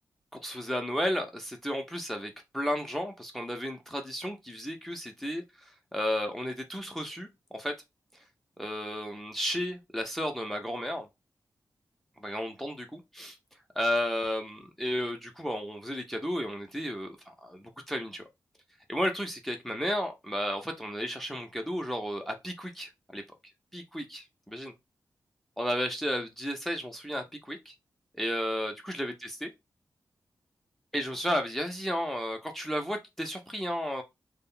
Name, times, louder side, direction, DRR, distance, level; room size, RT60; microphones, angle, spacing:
voice 1, 0.3-7.3 7.5-7.7 8.6-11.1 12.2-12.8 13.1-13.4 13.8-18.2 18.9-23.2 23.7-24.7 25.6-27.7 28.2-29.5 30.9-34.0, equal, 5° left, 0.5 m, -33 dB
2.3 x 2.1 x 3.6 m
wide cardioid pair, 120°, 7 cm